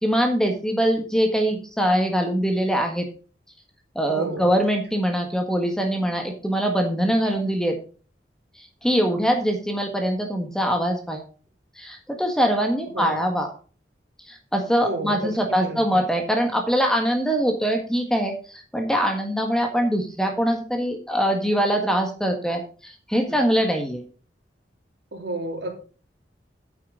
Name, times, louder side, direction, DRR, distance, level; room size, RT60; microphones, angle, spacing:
voice 1, 0.0-3.1 3.9-7.8 8.6-11.2 11.8-13.5 14.3-24.0, equal, 5° left, 3 dB, 1.5 m, -23 dB
voice 2, 4.1-4.5 7.2-7.4 12.9-13.2 14.8-16.0 23.3-23.4 25.1-25.7, right 2 dB, 75° right, 2 dB, 3.2 m, -32 dB
9.5 x 8.5 x 3.8 m, 0.38 s
head